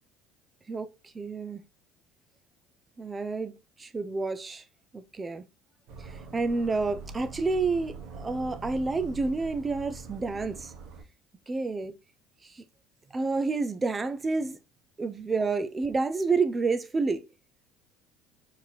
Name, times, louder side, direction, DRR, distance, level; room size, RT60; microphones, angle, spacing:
voice 1, 1.1-1.6 3.0-4.6 4.9-5.4 6.0-10.7 11.5-11.9 12.4-12.6 13.1-14.6 15.0-17.3, right 3 dB, 25° right, 0.9 m, -29 dB
sound 1, 5.9-11.0, right 4 dB, 65° right, 1.4 m, -43 dB
4.6 x 3.9 x 3.0 m
hypercardioid pair, 75°, 0 cm